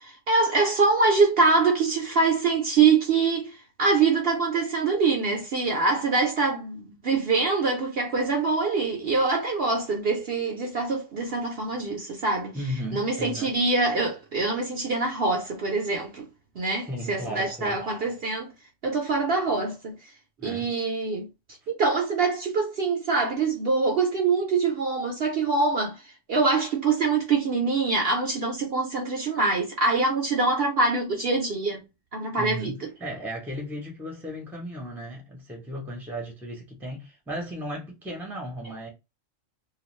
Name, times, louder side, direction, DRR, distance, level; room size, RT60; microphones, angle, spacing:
voice 1, 0.0-12.5 12.9-16.3 16.6-18.5 18.8-20.1 20.4-21.3 21.7-31.8 32.1-32.7, right 4 dB, 60° right, 0.7 m, -24 dB
voice 2, 12.5-13.5 16.9-17.8 20.4-20.7 32.4-38.9, equal, ahead, 0.6 m, -35 dB
2.4 x 2.3 x 3.0 m
omnidirectional pair, 1.4 m